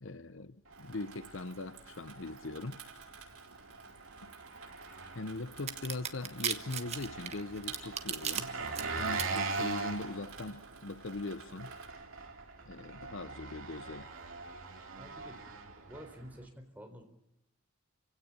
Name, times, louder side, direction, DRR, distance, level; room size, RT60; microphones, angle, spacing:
voice 1, 0.0-2.8 4.2-4.3 5.1-8.5 9.0-11.7 12.6-14.1, left 2 dB, 60° left, 0.8 m, -41 dB
Engine, 0.7-16.5, right 4 dB, 65° right, 3.4 m, -42 dB
Water tap faucet / Sink (filling or washing), 0.7-11.9, right 6 dB, 85° right, 5.4 m, -52 dB
sound 1, 5.7-8.4 8.8-9.2, right 8 dB, 30° right, 1.3 m, -35 dB
voice 2, 14.9-15.4 15.9-17.0, equal, 10° right, 4.0 m, -49 dB
29.0 x 17.0 x 8.8 m
head